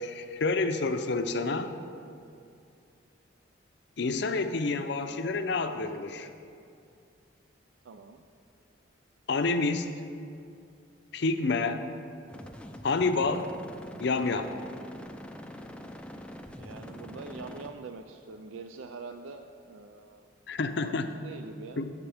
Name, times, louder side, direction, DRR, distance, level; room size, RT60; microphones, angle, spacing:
voice 1, 0.0-1.7 4.0-6.3 9.3-9.9 11.1-11.9 12.8-13.5 14.0-14.5 20.5-21.1 21.8-21.9, left 3 dB, 60° left, 8 dB, 0.5 m, -28 dB
voice 2, 7.8-8.2 16.6-20.3 20.8-21.8, right 4 dB, 85° right, 7 dB, 0.4 m, -44 dB
sound 1, 12.3-17.7, equal, 5° left, 0.4 m, -44 dB
16.0 x 6.7 x 3.4 m, 2.4 s
head